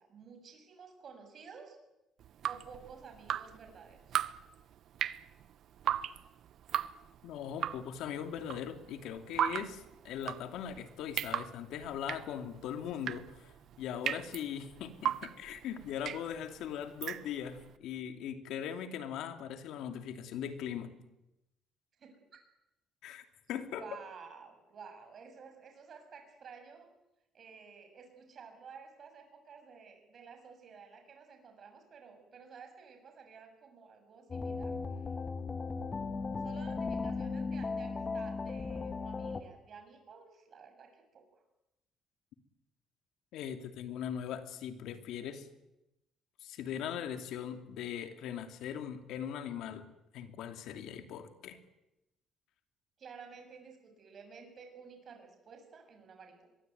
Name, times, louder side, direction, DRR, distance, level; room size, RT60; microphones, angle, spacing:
voice 1, 0.0-1.8 2.5-4.2 22.0-22.4 23.7-26.9 27.3-35.1 36.4-41.4 53.0-56.5, right 5 dB, 45° right, 5 dB, 7.1 m, -52 dB
Drip, 2.2-17.7, right 10 dB, 60° right, 0.9 m, -38 dB
voice 2, 7.2-13.5 13.8-20.9 23.0-23.8 43.3-45.5 46.4-49.9 50.1-51.6, left 9 dB, 75° left, 7 dB, 2.8 m, -40 dB
sound 1, 34.3-39.4, left 4 dB, 25° left, 1.7 m, -36 dB
24.5 x 22.5 x 9.4 m, 0.93 s
cardioid pair, 140°, 0 cm